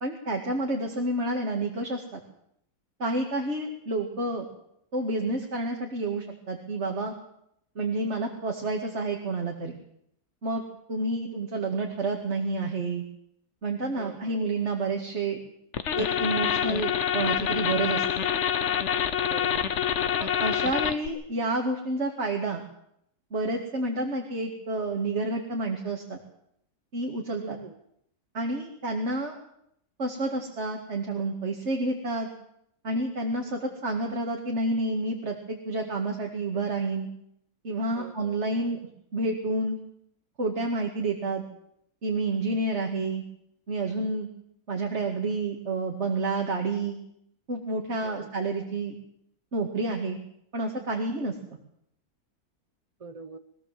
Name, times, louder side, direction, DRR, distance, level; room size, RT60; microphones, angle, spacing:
voice 1, 0.0-2.2 3.0-4.5 4.9-7.1 7.8-9.8 10.4-10.6 10.9-13.0 13.6-15.4 16.0-18.0 20.2-22.6 23.3-26.2 26.9-27.6 28.3-29.4 30.0-32.3 32.8-37.1 37.6-38.8 39.1-39.8 40.4-41.4 42.0-43.2 43.7-44.3 44.7-47.0 47.5-49.0 49.5-50.2 50.5-51.4, right 2 dB, 45° right, 2 dB, 2.4 m, -29 dB
voice 2, 14.0-14.4 19.2-19.7 27.4-27.8 37.9-38.4 48.0-48.3 53.0-53.4, right 4 dB, 25° right, 8 dB, 1.2 m, -42 dB
sound 1, 15.7-21.1, left 8 dB, 55° left, 1.2 m, -26 dB
22.0 x 16.0 x 7.6 m, 0.74 s
omnidirectional pair, 1.6 m